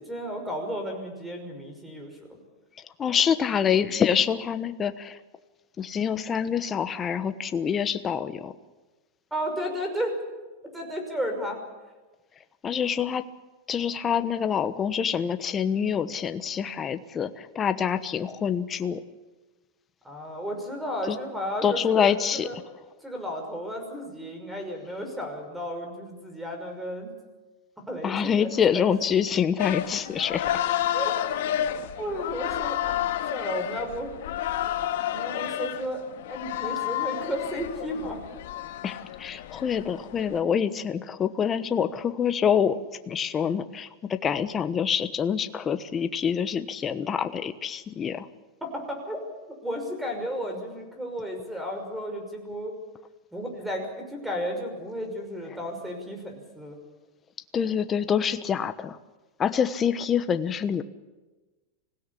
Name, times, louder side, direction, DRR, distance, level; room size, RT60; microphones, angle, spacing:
voice 1, 0.0-2.4 9.3-10.2 10.7-11.6 20.0-22.6 23.0-27.1 27.9-28.5 28.7-28.8 30.9-31.1 32.0-34.1 35.1-38.2 48.6-52.7 53.3-56.8, equal, 5° right, 4 dB, 5.8 m, -33 dB
voice 2, 3.0-5.2 5.8-8.5 12.6-13.2 13.7-19.0 21.1-21.2 21.6-22.5 28.0-30.4 38.8-42.8 43.1-48.3 57.5-59.0 59.4-60.8, left 7 dB, 20° left, 10 dB, 1.1 m, -26 dB
sound 1, 29.6-40.4, left 11 dB, 70° left, 1.7 m, -30 dB
25.5 x 17.0 x 8.5 m, 1.2 s
supercardioid pair, 145°, 0 cm